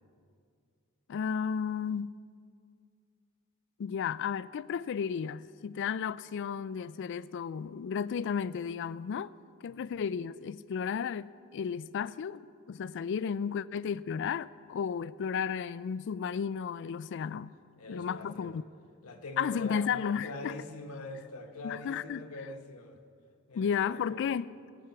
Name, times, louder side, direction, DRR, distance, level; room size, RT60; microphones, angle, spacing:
voice 1, 1.1-2.2 3.8-9.3 9.6-17.5 17.9-18.6 19.4-20.5 21.6-22.2 23.5-24.5, left 7 dB, 55° left, 0.3 m, -33 dB
voice 2, 17.8-18.5 19.0-19.9 20.2-23.0 23.5-24.3, left 2 dB, 80° left, 1.1 m, -43 dB
17.5 x 8.2 x 5.8 m
head